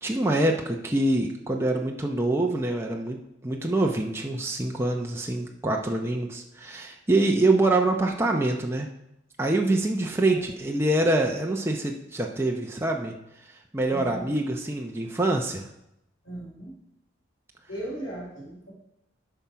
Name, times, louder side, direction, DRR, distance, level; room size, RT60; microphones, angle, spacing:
voice 1, 0.0-3.2 3.4-8.9 9.4-13.1 13.7-15.7, right 2 dB, 15° right, 1 dB, 0.7 m, -25 dB
voice 2, 9.6-10.5 13.9-14.3 16.2-16.8 17.7-18.7, right 1 dB, 75° left, -2 dB, 3.1 m, -38 dB
11.5 x 5.7 x 4.7 m, 0.83 s
head